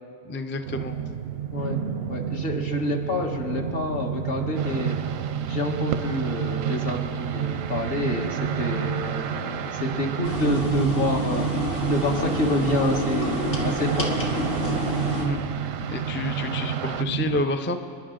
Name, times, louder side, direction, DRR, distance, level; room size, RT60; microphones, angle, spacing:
voice 1, 0.3-1.0 15.2-15.4 15.9-17.8, left 2 dB, 20° left, 7 dB, 0.3 m, -29 dB
sound 1, 0.6-17.4, right 8 dB, 60° right, 0.7 m, -30 dB
voice 2, 2.1-5.0 5.5-11.5 11.9-14.4, left 1 dB, 50° left, 1 dB, 1.6 m, -28 dB
sound 2, 4.5-17.0, right 8 dB, 90° right, 1.0 m, -35 dB
sound 3, 10.2-15.3, left 1 dB, 85° left, 2.3 m, -28 dB
29.0 x 11.0 x 3.8 m, 2.3 s
omnidirectional pair, 1.3 m